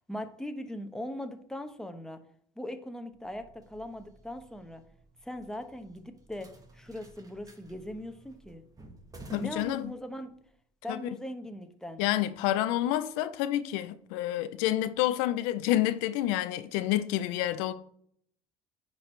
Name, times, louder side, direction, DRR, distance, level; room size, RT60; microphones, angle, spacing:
voice 1, 0.1-2.2 2.6-4.8 5.2-8.6 9.3-10.3 10.8-12.0, left 1 dB, 5° left, 1.0 m, -40 dB
sound 1, 3.1-10.5, right 2 dB, 25° right, 1.4 m, -52 dB
voice 2, 9.3-9.9 10.9-11.0 12.0-17.7, left 13 dB, 80° left, 0.5 m, -28 dB
9.0 x 4.8 x 3.2 m
supercardioid pair, 80°, 15 cm